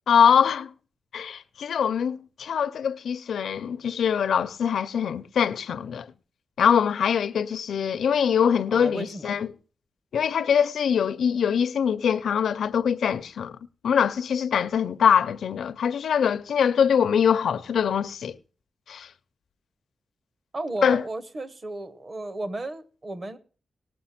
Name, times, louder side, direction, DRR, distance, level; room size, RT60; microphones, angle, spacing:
voice 1, 0.1-0.7 1.1-6.1 6.6-9.5 10.1-13.5 13.8-18.4 18.9-19.1 20.8-21.0, left 7 dB, 90° left, 0.6 m, -23 dB
voice 2, 8.7-9.3 20.5-23.4, right 2 dB, 30° right, 0.9 m, -34 dB
18.5 x 6.5 x 5.8 m
wide cardioid pair, 170°, 0 cm